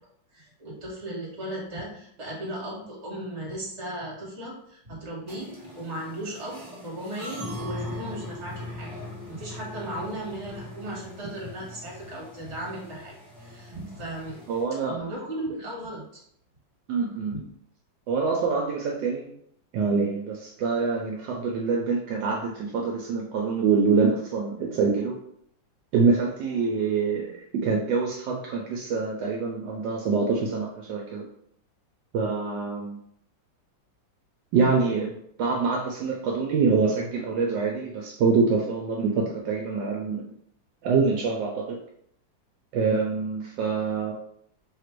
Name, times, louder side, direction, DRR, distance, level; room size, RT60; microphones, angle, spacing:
voice 1, 0.3-8.9 9.3-14.4 14.8-16.2 17.3-17.4, right 1 dB, 40° right, -3 dB, 1.5 m, -36 dB
sound 1, 5.3-14.6, left 1 dB, 10° left, 1.3 m, -40 dB
voice 2, 14.5-15.0 16.9-17.4 18.1-19.3 19.7-25.2 25.9-31.3 32.1-33.0 34.5-40.3 40.8-41.8 42.7-44.1, right 4 dB, 75° right, -1 dB, 1.2 m, -25 dB
3.2 x 2.5 x 4.4 m, 0.68 s
omnidirectional pair, 2.1 m